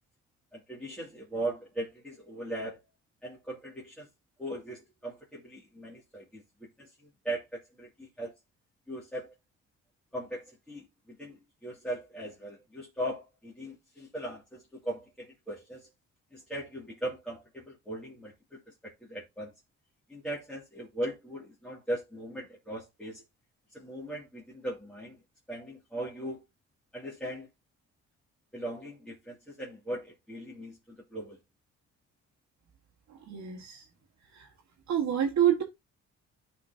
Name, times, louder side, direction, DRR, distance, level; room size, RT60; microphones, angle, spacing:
voice 1, 0.5-2.8 3.2-4.1 4.4-6.4 6.8-8.3 8.9-9.3 10.1-15.9 16.3-19.5 20.1-23.2 23.7-25.2 25.5-26.4 26.9-27.5 28.5-31.4, right 1 dB, 5° left, 2.4 m, -39 dB
voice 2, 33.1-33.9 34.3-34.5 34.9-35.6, right 10 dB, 60° right, 1.6 m, -27 dB
12.0 x 4.3 x 2.7 m
cardioid pair, 90°, 30 cm